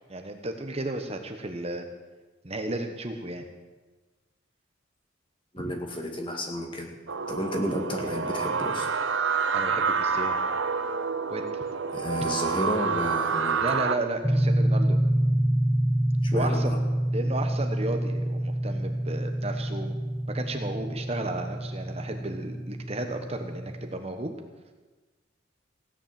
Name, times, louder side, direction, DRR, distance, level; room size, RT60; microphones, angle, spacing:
voice 1, 0.1-1.8 2.4-3.4 5.6-5.7 9.5-10.4 11.3-11.6 13.6-15.0 16.3-16.8 17.1-19.9 20.3-24.3, right 2 dB, 30° right, 5 dB, 1.1 m, -33 dB
voice 2, 5.5-6.9 7.3-8.9 11.9-13.6 16.2-16.8, left 1 dB, 25° left, 3 dB, 2.1 m, -31 dB
sound 1, 7.1-14.0, right 5 dB, 75° right, 0.9 m, -28 dB
sound 2, 14.2-24.0, right 1 dB, 5° right, 0.6 m, -27 dB
16.5 x 10.0 x 7.6 m, 1.3 s
head